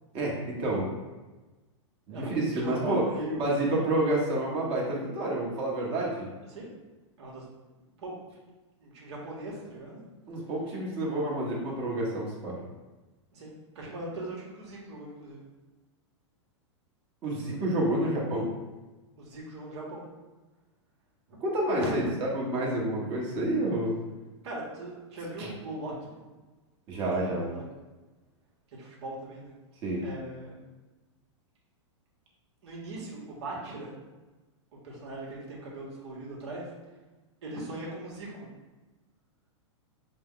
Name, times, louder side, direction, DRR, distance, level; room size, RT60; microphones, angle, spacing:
voice 1, 0.1-0.9 2.1-6.3 10.3-12.6 17.2-18.5 21.4-24.0 25.4-25.5 26.9-27.5 29.8-30.1, right 1 dB, 35° right, -4 dB, 1.4 m, -29 dB
voice 2, 2.1-3.9 6.5-6.7 7.2-7.4 8.0-8.1 8.8-10.0 13.3-15.4 19.2-20.0 21.3-21.4 21.8-22.1 24.4-26.2 27.0-27.6 28.7-29.5 30.0-30.6 32.6-33.9 34.8-36.7 37.4-38.5, right 1 dB, 65° right, -4 dB, 1.5 m, -39 dB
4.9 x 2.3 x 3.8 m, 1.2 s
hypercardioid pair, 140°, 16 cm